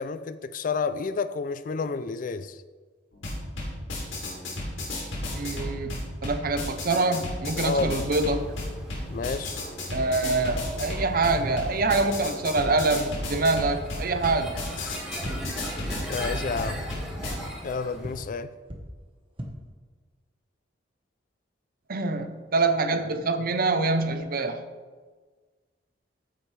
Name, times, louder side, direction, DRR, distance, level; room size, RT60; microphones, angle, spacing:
voice 1, 0.0-2.6 7.6-8.0 9.1-9.6 14.8-15.0 16.1-16.8 17.6-18.5, left 4 dB, 45° left, 0.4 m, -30 dB
sound 1, 3.1-17.3, left 1 dB, 85° left, 3.2 m, -33 dB
voice 2, 5.3-5.9 6.2-8.5 9.9-14.6 21.9-24.7, right 3 dB, 50° right, 0.8 m, -25 dB
sound 2, 8.4-18.2, equal, 5° right, 2.0 m, -40 dB
sound 3, 14.5-14.7 15.2-15.3 15.9-16.0 16.6-16.7 17.3-17.4 18.0-18.1 18.6-18.8 19.2-19.5, right 1 dB, 25° right, 1.2 m, -38 dB
13.5 x 7.6 x 3.3 m
head